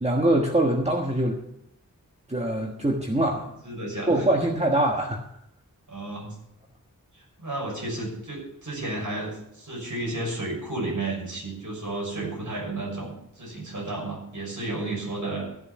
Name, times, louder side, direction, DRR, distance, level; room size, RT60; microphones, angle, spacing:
voice 1, 0.0-1.4 2.3-3.5 4.1-5.2, right 1 dB, 20° right, 1 dB, 1.4 m, -23 dB
voice 2, 3.6-4.3 5.9-6.4 7.1-15.5, right 2 dB, 60° right, -2 dB, 6.3 m, -32 dB
13.5 x 6.9 x 7.0 m, 0.79 s
wide cardioid pair, 45°, 35 cm